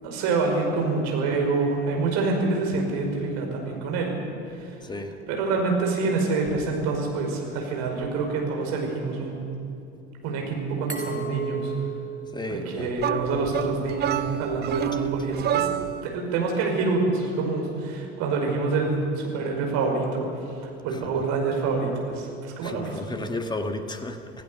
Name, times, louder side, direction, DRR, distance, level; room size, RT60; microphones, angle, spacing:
voice 1, 0.0-4.2 4.6-4.7 5.3-9.3 10.2-11.7 12.5-15.7 16.0-20.3 20.8-23.0, right 3 dB, 55° right, 1 dB, 5.3 m, -26 dB
voice 2, 4.8-5.2 12.3-12.9 20.9-21.0 22.6-24.4, left 2 dB, 15° left, 7 dB, 1.8 m, -33 dB
Glass, 10.9-13.7, right 5 dB, 85° right, 2.4 m, -36 dB
sound 1, 13.0-16.1, right 11 dB, 30° right, 0.6 m, -28 dB
26.5 x 16.0 x 6.9 m, 2.6 s
figure-of-eight pair, 65°, 33 cm